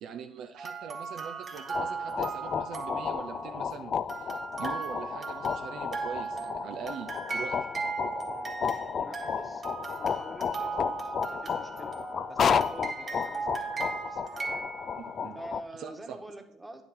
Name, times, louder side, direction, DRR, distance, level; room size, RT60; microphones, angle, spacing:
voice 1, 0.0-3.9 4.2-4.3 4.6-7.7 15.0-15.4 15.8-16.2, right 7 dB, 60° right, 6 dB, 0.6 m, -42 dB
sound 1, 0.6-3.7 4.1-15.3, right 4 dB, 35° right, 1.7 m, -37 dB
sound 2, 1.6-15.6, left 7 dB, 45° left, 0.4 m, -33 dB
voice 2, 8.3-9.6 10.0-12.0 12.3-14.2 14.5-14.7 15.3-16.8, right 1 dB, 10° right, 5 dB, 1.4 m, -47 dB
9.5 x 7.0 x 3.7 m, 0.68 s
hypercardioid pair, 65°, 0 cm